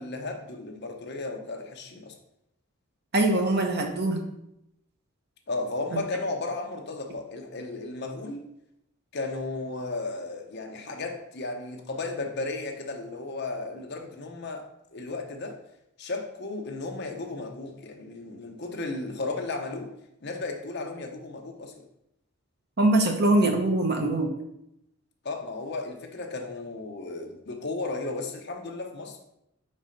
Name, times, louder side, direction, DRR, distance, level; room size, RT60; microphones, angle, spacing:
voice 1, 0.0-2.2 5.5-8.4 9.1-15.6 16.0-19.9 20.2-21.9 25.2-29.2, left 3 dB, 50° left, 0.8 m, -34 dB
voice 2, 3.1-4.2 5.9-6.0 22.8-24.3, right 2 dB, 50° right, 0.9 m, -23 dB
4.4 x 4.2 x 5.1 m
head